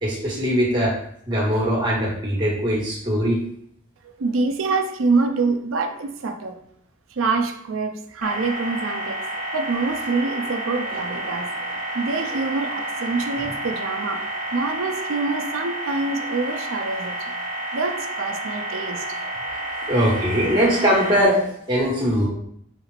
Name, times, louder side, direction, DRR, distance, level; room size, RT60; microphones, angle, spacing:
voice 1, 0.0-1.0 1.3-3.4 10.9-11.2 11.9-12.3 13.4-13.5 19.7-22.3, equal, 25° right, -5 dB, 1.1 m, -21 dB
voice 2, 4.0-6.6 7.1-9.2 9.5-14.2 14.5-17.3 17.7-19.6, right 3 dB, 85° right, 5 dB, 0.5 m, -26 dB
sound 1, 8.2-21.2, right 1 dB, 40° right, 0.6 m, -30 dB
4.3 x 2.4 x 3.2 m, 0.69 s
head